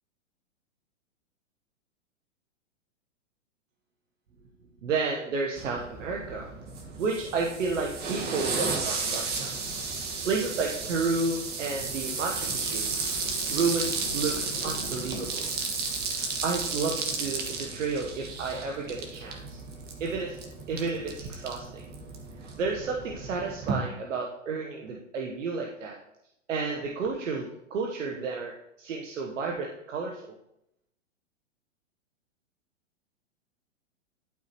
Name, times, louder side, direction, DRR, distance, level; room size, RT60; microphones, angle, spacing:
voice 1, 4.8-6.5 7.0-9.5 10.2-12.9 13.5-15.5 16.1-19.6 20.0-20.4 20.7-21.8 22.6-26.0 26.5-30.3, right 4 dB, 75° right, 0 dB, 1.2 m, -31 dB
sound 1, 5.6-23.8, right 4 dB, 25° right, 1.4 m, -33 dB
sound 2, 9.4-15.3, left 4 dB, 85° left, 1.6 m, -46 dB
12.0 x 4.7 x 3.1 m, 0.79 s
hypercardioid pair, 120°, 38 cm